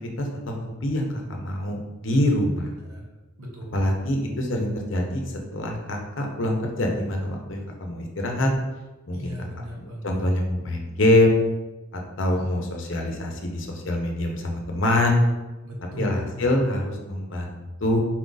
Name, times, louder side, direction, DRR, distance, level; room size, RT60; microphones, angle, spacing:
voice 1, 0.0-2.7 3.7-8.5 9.1-9.3 9.8-11.4 11.9-15.2 16.0-18.0, left 1 dB, 65° left, 1 dB, 0.7 m, -25 dB
voice 2, 3.4-3.9 9.1-10.2 12.3-12.4 15.6-16.6, left 1 dB, 80° right, -2 dB, 1.0 m, -36 dB
4.3 x 2.4 x 3.9 m, 1.1 s
head